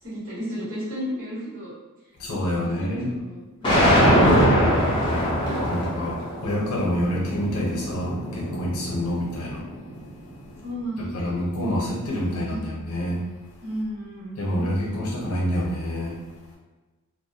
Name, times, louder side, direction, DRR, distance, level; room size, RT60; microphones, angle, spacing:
voice 1, 0.0-1.7 2.5-4.1 5.4-6.5 10.6-11.3 12.1-12.8 13.6-14.6, equal, 70° right, -11 dB, 1.4 m, -34 dB
voice 2, 2.2-3.1 5.6-9.6 11.0-13.2 14.4-16.2, equal, 85° left, -3 dB, 0.8 m, -27 dB
sound 1, 3.6-9.8, equal, 20° left, 0.6 m, -22 dB
2.5 x 2.2 x 2.6 m, 1.2 s
head